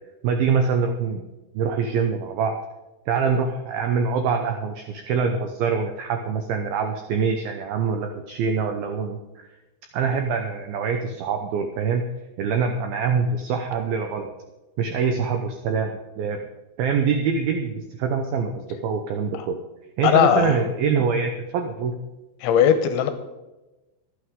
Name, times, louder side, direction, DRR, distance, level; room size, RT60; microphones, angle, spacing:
voice 1, 0.2-1.3 1.5-2.6 3.1-9.4 9.9-12.1 12.4-14.3 14.8-16.4 16.8-19.6 20.0-22.0, right 5 dB, 85° right, 5 dB, 2.1 m, -24 dB
voice 2, 20.0-20.6 22.4-23.1, left 9 dB, 80° left, 9 dB, 3.1 m, -18 dB
25.0 x 9.0 x 3.7 m, 1.1 s
omnidirectional pair, 5.5 m